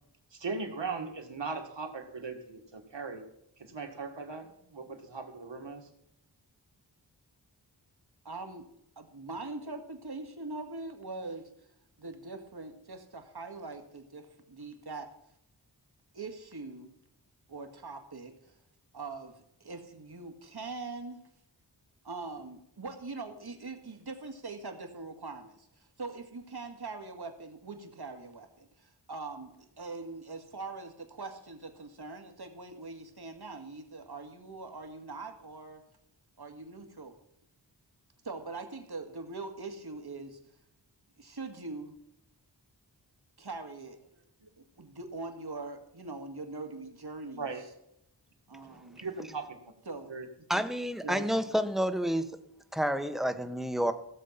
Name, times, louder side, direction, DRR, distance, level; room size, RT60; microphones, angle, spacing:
voice 1, 0.3-3.2 3.6-5.9 44.4-44.5 47.4-47.6 49.0-49.6 50.1-50.3 51.0-51.2, right 4 dB, 80° right, 4 dB, 2.0 m, -38 dB
voice 2, 8.2-8.7 9.0-11.5 12.0-15.1 16.1-16.9 17.5-18.6 18.9-21.3 22.0-35.8 36.4-37.1 38.2-40.4 41.2-41.9 43.4-44.0 44.6-47.5 48.5-49.0 49.9-50.2, right 3 dB, 60° right, 5 dB, 2.1 m, -42 dB
voice 3, 50.5-52.2 52.7-53.9, equal, ahead, 9 dB, 1.2 m, -29 dB
16.5 x 7.4 x 5.8 m, 0.77 s
wide cardioid pair, 50°, 43 cm